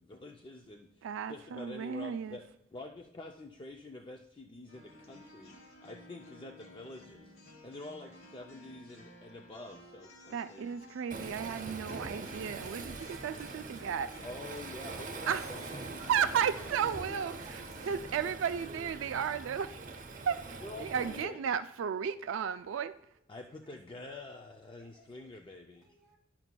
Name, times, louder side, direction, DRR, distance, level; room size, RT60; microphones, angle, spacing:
voice 1, 0.0-2.4 2.7-5.6 5.8-7.3 7.6-10.8 14.2-16.4 20.6-21.4 23.3-25.9, left 2 dB, 25° left, 0.4 m, -47 dB
voice 2, 1.0-2.4 10.3-14.1 15.3-15.4 16.1-17.3 17.9-19.7 20.3-22.9, right 7 dB, 70° right, 0.3 m, -34 dB
sound 1, 4.7-18.0, left 1 dB, 90° left, 1.6 m, -55 dB
Waves surf, 11.1-21.2, right 3 dB, 40° right, 0.8 m, -43 dB
voice 3, 16.0-16.4 17.1-17.8 20.6-20.7 23.5-23.8 24.8-25.3 25.7-26.2, equal, ahead, 2.8 m, -57 dB
11.0 x 5.8 x 2.2 m
head